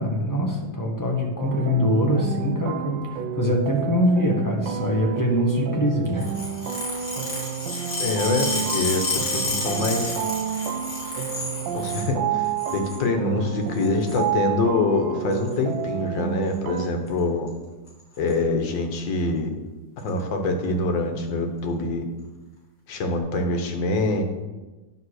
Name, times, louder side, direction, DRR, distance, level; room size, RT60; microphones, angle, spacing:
voice 1, 0.0-6.3, left 1 dB, 15° left, -1 dB, 0.8 m, -23 dB
sound 1, 1.4-16.9, right 9 dB, 85° right, 1.3 m, -30 dB
sound 2, 6.2-12.1 12.4-13.0 13.7-14.2 15.3-15.5 16.5-16.8 17.1-17.2 17.5-17.6 17.9-18.3 19.0-19.1 20.0-20.1, left 2 dB, 60° left, 3.2 m, -30 dB
voice 2, 8.0-8.5 8.7-10.2 11.7-17.5 18.2-19.5 20.0-22.0 22.9-24.2, left 3 dB, 85° left, 4 dB, 1.8 m, -25 dB
9.7 x 3.8 x 6.3 m, 1.2 s
omnidirectional pair, 2.0 m